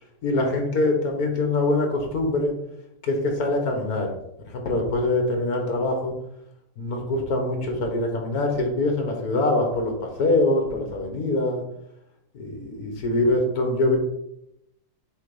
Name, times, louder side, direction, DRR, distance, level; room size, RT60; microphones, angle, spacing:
voice 1, 0.2-2.5 3.0-4.1 4.5-6.1 6.8-9.9 10.2-11.6 12.3-14.0, left 2 dB, 65° left, 3 dB, 1.7 m, -24 dB
7.4 x 2.9 x 5.3 m, 0.82 s
omnidirectional pair, 1.8 m